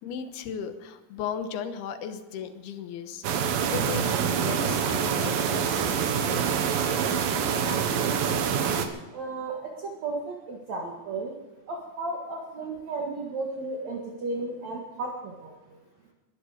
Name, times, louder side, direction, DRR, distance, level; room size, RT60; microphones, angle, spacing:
voice 1, 0.0-6.7, left 7 dB, 85° left, 8 dB, 3.2 m, -36 dB
sound 1, 3.2-8.9, right 7 dB, 70° right, 2.9 m, -26 dB
voice 2, 7.6-8.5 9.1-11.4 11.7-15.5, right 3 dB, 55° right, 0 dB, 2.7 m, -34 dB
22.0 x 12.5 x 5.0 m, 1.2 s
omnidirectional pair, 4.4 m